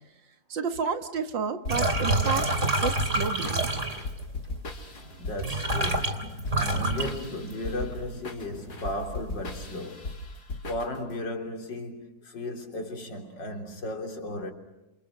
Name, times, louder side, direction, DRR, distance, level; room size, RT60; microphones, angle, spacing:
voice 1, 0.5-3.7, right 6 dB, 90° right, 2.4 m, -31 dB
sound 1, 1.6-11.2, left 2 dB, 60° left, 3.2 m, -38 dB
sound 2, 1.7-4.2 5.1-5.2 5.4-7.8 8.1-8.6 9.0-9.6, right 2 dB, 40° right, 3.2 m, -27 dB
voice 2, 5.2-10.1 10.7-14.5, left 1 dB, 75° left, 4.1 m, -35 dB
28.5 x 28.0 x 6.2 m
omnidirectional pair, 2.0 m